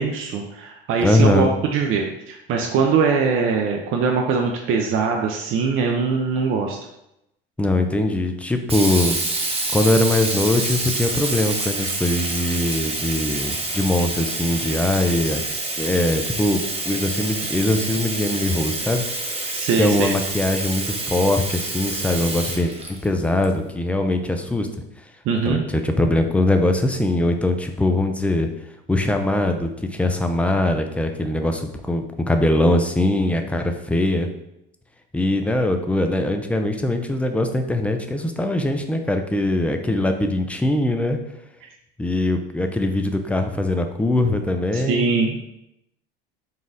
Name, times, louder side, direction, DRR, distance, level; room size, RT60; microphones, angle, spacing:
voice 1, 0.0-6.8 19.5-20.1 25.3-25.6 44.7-45.4, right 5 dB, 45° right, 1 dB, 0.6 m, -22 dB
voice 2, 1.0-1.6 7.6-9.2 9.7-15.4 15.8-19.1 19.8-24.7 25.5-28.5 28.9-34.3 35.1-41.2 42.0-45.1, left 1 dB, 5° left, 6 dB, 0.4 m, -21 dB
Sink (filling or washing), 8.7-23.4, right 2 dB, 20° right, 0.9 m, -27 dB
4.1 x 2.3 x 3.9 m, 0.84 s
hypercardioid pair, 80°, 29 cm